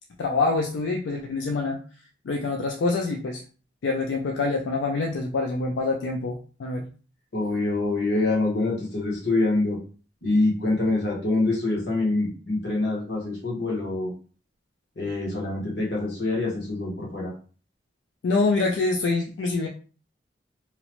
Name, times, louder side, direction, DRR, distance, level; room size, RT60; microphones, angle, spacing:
voice 1, 0.2-1.8 2.3-3.4 3.8-6.8 18.2-19.7, left 3 dB, 90° left, 2 dB, 0.4 m, -25 dB
voice 2, 7.3-9.8 10.2-14.1 15.0-17.3, left 2 dB, 65° left, -3 dB, 1.1 m, -25 dB
2.8 x 2.0 x 2.9 m, 0.38 s
head